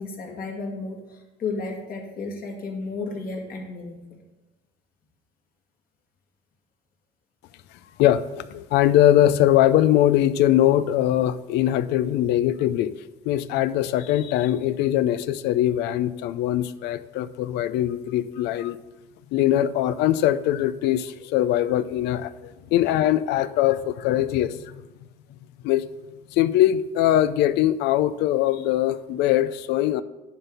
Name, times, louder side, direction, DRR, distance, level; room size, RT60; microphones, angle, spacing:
voice 1, 0.0-4.2, left 3 dB, 60° left, 0 dB, 2.3 m, -33 dB
voice 2, 8.0-12.9 13.3-18.8 19.3-25.1 25.6-25.9 26.3-30.0, left 12 dB, 90° left, 14 dB, 0.5 m, -21 dB
11.0 x 4.0 x 6.7 m, 1.1 s
cardioid pair, 110°, 17 cm